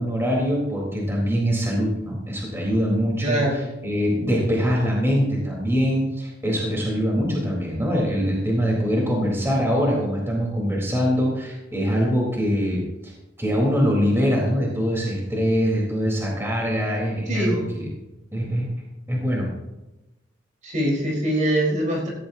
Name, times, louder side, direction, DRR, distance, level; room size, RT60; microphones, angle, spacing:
voice 1, 0.0-3.4 3.8-13.1 13.4-17.9 18.3-18.7 19.1-19.5, equal, 15° right, -3 dB, 3.8 m, -23 dB
voice 2, 3.2-3.6 17.3-17.6 20.6-22.1, right 1 dB, 40° right, -2 dB, 4.3 m, -23 dB
17.0 x 16.0 x 2.8 m, 1.0 s
head